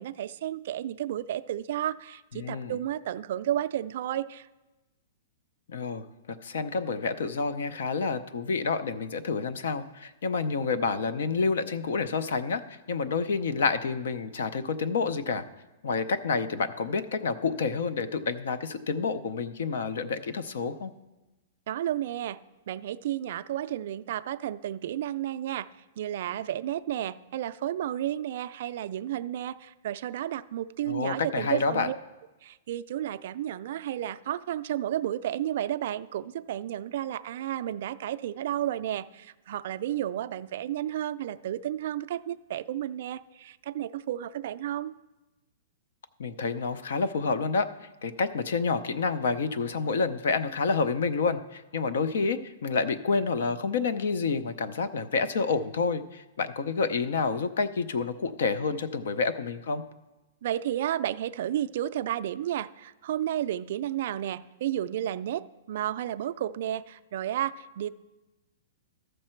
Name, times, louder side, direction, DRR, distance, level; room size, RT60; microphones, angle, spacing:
voice 1, 0.0-4.5 21.7-22.4 22.7-25.7 26.0-32.0 32.4-44.9 60.4-67.9, right 12 dB, 50° right, 11 dB, 0.3 m, -32 dB
voice 2, 2.3-2.8 5.7-15.4 15.8-20.9 30.8-31.9 46.2-47.7 48.0-59.8, left 4 dB, 70° left, 13 dB, 0.6 m, -29 dB
13.5 x 6.5 x 4.4 m, 1.1 s
hypercardioid pair, 170°, 0 cm